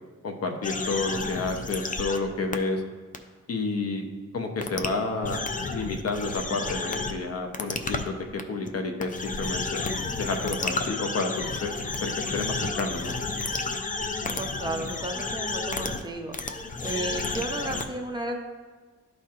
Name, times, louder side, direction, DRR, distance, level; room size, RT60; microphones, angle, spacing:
voice 1, 0.2-2.8 3.5-4.0 4.3-5.4 5.7-9.9 10.2-13.2, left 3 dB, 55° left, 4 dB, 0.8 m, -30 dB
sound 1, 0.6-2.2 2.5-2.6 3.1-3.2 4.6-4.9 5.2-7.1 7.5-8.0 8.4-8.7 9.0-16.1 16.3-17.8, left 3 dB, 30° left, 0.5 m, -31 dB
voice 2, 14.4-16.4 16.8-18.4, right 2 dB, 15° right, 1 dB, 0.7 m, -33 dB
12.5 x 4.3 x 2.5 m, 1.4 s
wide cardioid pair, 115°, 29 cm